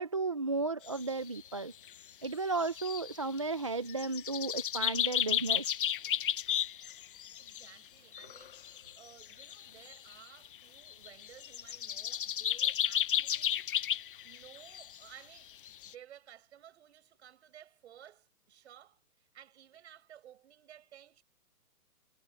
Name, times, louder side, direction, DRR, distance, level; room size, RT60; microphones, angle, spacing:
voice 1, 0.0-1.7 2.2-5.8, right 3 dB, 20° right, 0.5 m, -34 dB
sound 1, 0.9-1.6 1.9-2.0 2.2-2.3 2.5-3.5 3.9-7.7 8.1-10.2 10.4-15.0 15.4-15.5 15.7-15.9, left 10 dB, 35° left, 0.9 m, -34 dB
voice 2, 7.4-13.7 14.2-21.2, right 11 dB, 45° right, 7.1 m, -56 dB
hypercardioid pair, 160°, 46 cm